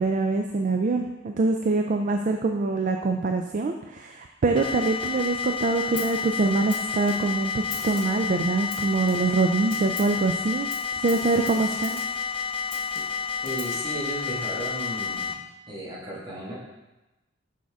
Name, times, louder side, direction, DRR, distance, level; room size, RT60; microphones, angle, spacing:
voice 1, 0.0-12.0, right 3 dB, 40° right, 4 dB, 0.4 m, -24 dB
sound 1, 4.6-15.3, left 5 dB, 25° left, 0.4 m, -30 dB
Snare drum, 6.0-6.3 6.7-7.4 7.7-8.3 8.7-9.4 9.7-10.2 10.7-12.2 12.7-13.9, left 4 dB, 45° left, 1.1 m, -41 dB
voice 2, 13.4-15.4 15.7-16.5, right 1 dB, 25° right, -6 dB, 1.8 m, -34 dB
6.4 x 5.7 x 3.6 m, 1.0 s
head